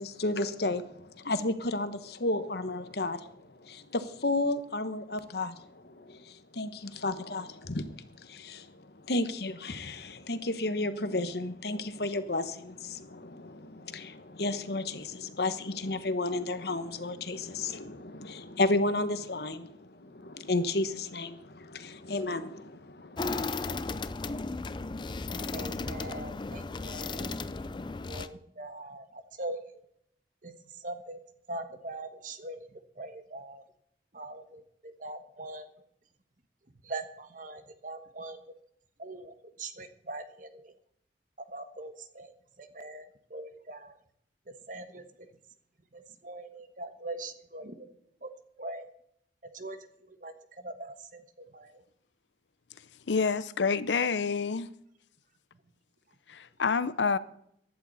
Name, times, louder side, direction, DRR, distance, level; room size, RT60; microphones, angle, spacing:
voice 1, 0.0-23.5, left 2 dB, 60° left, 1.1 m, -33 dB
sound 1, 23.2-28.3, left 3 dB, 25° left, 0.4 m, -35 dB
voice 2, 25.5-27.4 28.1-29.6 30.4-31.2 31.5-33.6 34.1-35.7 36.8-38.4 39.0-40.7 41.4-44.0 44.7-45.0 45.9-47.9 48.2-48.3 48.6-48.9 49.5-49.8 50.1-51.8, right 2 dB, 45° right, 1.2 m, -42 dB
voice 3, 53.1-54.7 56.3-57.2, left 5 dB, 85° left, 0.7 m, -28 dB
15.0 x 11.0 x 4.1 m
head